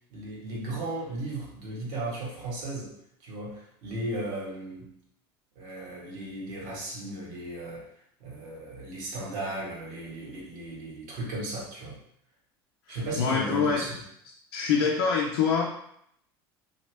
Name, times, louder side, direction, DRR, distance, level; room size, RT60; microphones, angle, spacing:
voice 1, 0.1-2.9 3.2-4.9 5.5-7.9 8.2-12.0 12.9-14.0, right 2 dB, 65° right, -3 dB, 1.3 m, -36 dB
voice 2, 12.9-13.8 14.5-15.6, left 6 dB, 75° left, -1 dB, 0.5 m, -25 dB
2.9 x 2.4 x 3.2 m, 0.71 s
hypercardioid pair, 90°, 13 cm